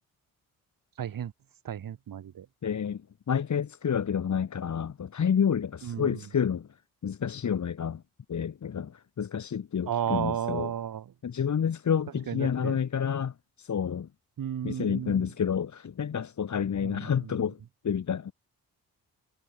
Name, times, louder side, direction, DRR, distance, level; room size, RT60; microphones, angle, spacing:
voice 1, 1.0-1.3 1.6-2.5 5.8-6.2 9.9-11.1 12.3-12.8 14.4-15.3 16.8-17.3, right 9 dB, 70° right, 4.3 m, -33 dB
voice 2, 2.6-3.0 3.3-6.7 7.0-8.0 8.3-10.7 11.2-14.1 14.6-17.6 17.8-18.3, left 7 dB, 55° left, 2.4 m, -29 dB
cardioid pair, 65°, 35 cm